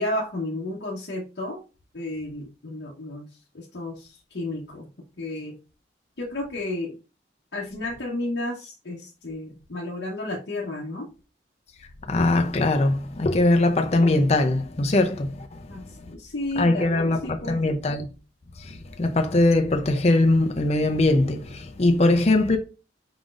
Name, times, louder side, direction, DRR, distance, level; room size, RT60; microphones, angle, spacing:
voice 1, 0.0-1.6 1.9-3.3 3.5-4.9 5.2-5.6 6.2-7.0 7.5-11.1 15.7-17.6, left 1 dB, 65° left, 0.9 m, -32 dB
voice 2, 12.1-15.6 16.6-18.1 18.6-22.6, left 2 dB, 35° left, 0.5 m, -21 dB
4.9 x 3.8 x 2.5 m
head